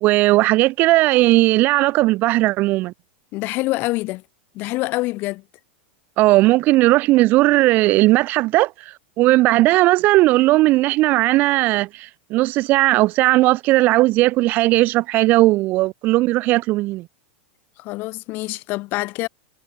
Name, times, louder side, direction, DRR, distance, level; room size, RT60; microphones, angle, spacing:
voice 1, 0.0-2.9 6.2-17.0, right 19 dB, 30° right, 0.8 m, -17 dB
voice 2, 3.3-4.2 4.5-5.4 17.8-19.3, left 21 dB, 35° left, 4.8 m, -25 dB
supercardioid pair, 165°, 6 cm